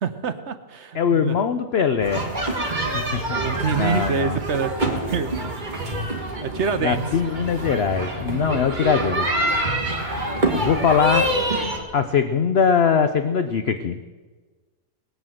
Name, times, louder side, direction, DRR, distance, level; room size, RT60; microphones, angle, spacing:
voice 1, 0.0-1.4 2.9-4.7 5.1-5.6 6.4-7.0 11.6-11.7, right 6 dB, 50° right, 9 dB, 0.9 m, -27 dB
voice 2, 0.9-2.3 2.9-3.2 3.7-4.4 6.8-9.3 10.6-11.3 11.9-14.0, left 6 dB, 60° left, 9 dB, 0.6 m, -21 dB
sound 1, 2.0-11.8, right 1 dB, 25° right, 2.1 m, -26 dB
19.0 x 9.5 x 7.7 m, 1.4 s
omnidirectional pair, 1.8 m